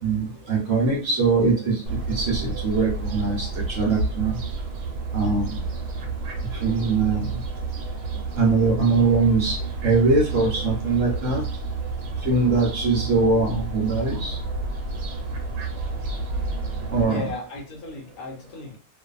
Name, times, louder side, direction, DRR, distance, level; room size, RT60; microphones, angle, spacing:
voice 1, 0.0-4.4 5.1-5.6 6.6-7.4 8.4-9.6 9.8-11.4 12.2-14.4 16.9-17.3, right 3 dB, 60° right, -3 dB, 0.9 m, -22 dB
Fowl, 1.9-17.0, right 3 dB, 80° right, 1.3 m, -30 dB
voice 2, 17.0-18.8, left 2 dB, 70° left, 0 dB, 1.1 m, -35 dB
2.6 x 2.5 x 2.4 m, 0.38 s
omnidirectional pair, 1.7 m